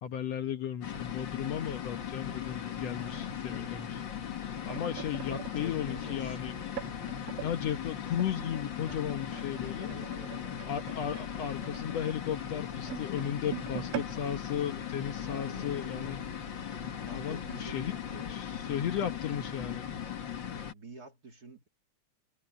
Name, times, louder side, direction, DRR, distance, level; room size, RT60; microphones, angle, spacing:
voice 1, 0.0-4.0 4.6-6.5 7.4-9.9 10.7-16.2 17.1-17.9 18.3-19.9, left 9 dB, 65° left, 2.1 m, -35 dB
sound 1, 0.8-20.7, left 8 dB, 45° left, 2.0 m, -38 dB
voice 2, 3.0-3.7 4.8-6.4 9.8-10.5 15.3-16.2 17.0-18.4 20.7-21.7, right 1 dB, 30° right, 2.9 m, -49 dB
sound 2, 4.2-7.5 8.2-15.5 15.8-16.0 16.3-16.6 17.3-17.4, right 17 dB, 85° right, 2.2 m, -45 dB
omnidirectional pair, 3.5 m